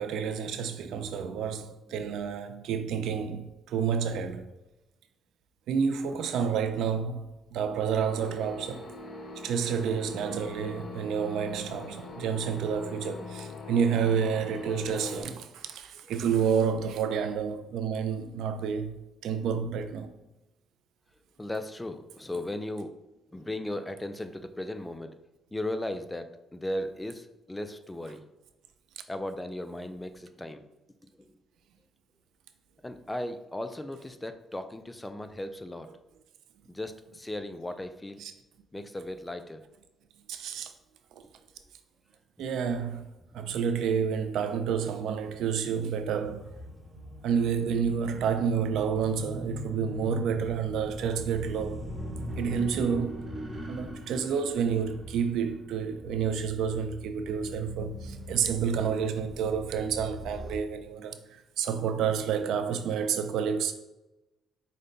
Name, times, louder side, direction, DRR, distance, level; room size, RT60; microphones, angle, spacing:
voice 1, 0.0-4.4 5.7-8.9 9.4-19.0 19.2-20.1 38.2-38.3 40.3-40.7 42.4-43.0 43.3-46.5 47.2-51.8 52.4-53.3 53.7-61.2 61.6-63.7, right 7 dB, 80° right, 0.4 m, -29 dB
sound 1, 8.1-15.2, left 3 dB, 45° left, 1.0 m, -42 dB
voice 2, 16.0-16.3 21.4-23.0 23.3-25.1 25.5-28.2 29.1-30.7 31.1-31.4 32.8-35.9 36.7-38.2 38.7-39.6, left 1 dB, 15° left, 0.4 m, -37 dB
sound 2, 46.2-60.6, equal, 35° right, 0.8 m, -41 dB
5.1 x 2.2 x 3.9 m
cardioid pair, 90°, 0 cm